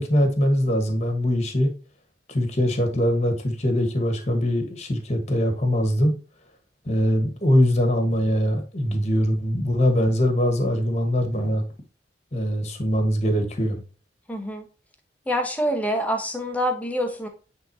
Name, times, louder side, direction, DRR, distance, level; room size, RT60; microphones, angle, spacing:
voice 1, 0.0-1.7 2.3-6.1 6.8-11.6 12.3-13.8, equal, 40° left, 1.4 m, -22 dB
voice 2, 14.3-14.6 15.3-17.3, equal, 10° left, 1.2 m, -26 dB
9.0 x 3.9 x 2.8 m
head